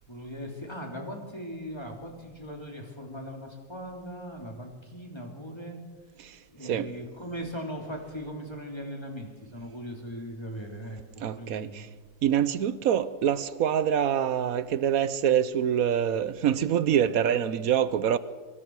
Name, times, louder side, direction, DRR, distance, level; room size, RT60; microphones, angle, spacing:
voice 1, 0.1-5.8 6.5-11.8, equal, 15° left, 3.1 m, -39 dB
voice 2, 6.6-6.9 11.2-11.9 12.2-18.2, right 9 dB, 60° right, 1.0 m, -25 dB
24.5 x 23.0 x 4.7 m
omnidirectional pair, 2.0 m